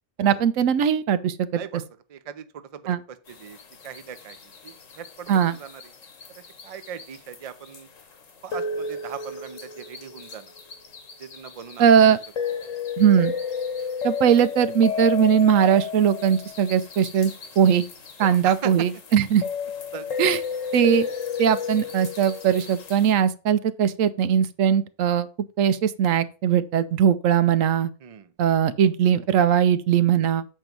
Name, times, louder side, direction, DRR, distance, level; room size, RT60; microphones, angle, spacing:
voice 1, 0.2-1.6 2.9-3.0 5.3-5.6 11.8-12.2 13.0-13.3 14.0-17.8 18.2-19.4 20.2-20.4 20.7-21.1 21.4-25.3 25.6-27.9 28.4-30.5, right 8 dB, 85° right, 1.0 m, -20 dB
voice 2, 1.5-1.8 2.1-3.6 3.8-4.4 4.6-5.9 6.3-7.9 8.4-10.5 11.2-12.2 18.2-18.9 19.9-20.1 28.0-28.3, right 7 dB, 40° right, 0.5 m, -39 dB
sound 1, 3.3-23.1, left 6 dB, 85° left, 1.5 m, -33 dB
7.6 x 4.6 x 5.2 m
omnidirectional pair, 1.3 m